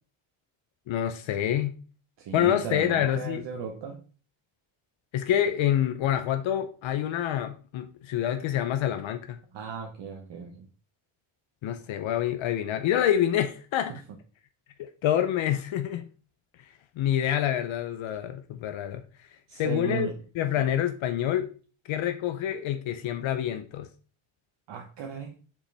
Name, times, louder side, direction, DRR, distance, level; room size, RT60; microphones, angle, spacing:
voice 1, 0.9-1.7 2.3-3.5 5.1-9.4 11.6-13.9 14.8-16.0 17.0-19.0 19.5-20.1 20.4-21.5 21.9-23.9, left 10 dB, 70° left, 0.7 m, -27 dB
voice 2, 2.2-4.0 9.5-10.7 19.5-20.1 20.6-20.7 24.7-25.3, right 7 dB, 60° right, 1.1 m, -36 dB
7.0 x 5.1 x 3.4 m
cardioid pair, 175°, 49 cm